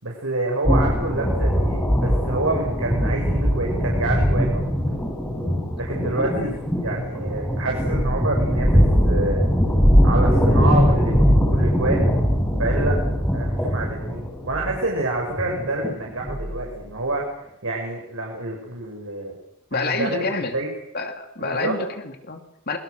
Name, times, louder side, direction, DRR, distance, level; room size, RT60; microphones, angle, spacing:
voice 1, 0.0-4.6 5.8-9.4 10.0-11.2 11.5-12.1 12.6-13.0 13.3-19.4 19.7-20.7 21.4-21.8, right 2 dB, 70° right, -1 dB, 6.2 m, -27 dB
sound 1, 0.6-16.8, equal, 10° left, 5.9 m, -21 dB
voice 2, 19.7-20.5 20.9-22.8, left 3 dB, 45° left, 5 dB, 2.9 m, -28 dB
27.0 x 23.0 x 6.6 m, 0.77 s
head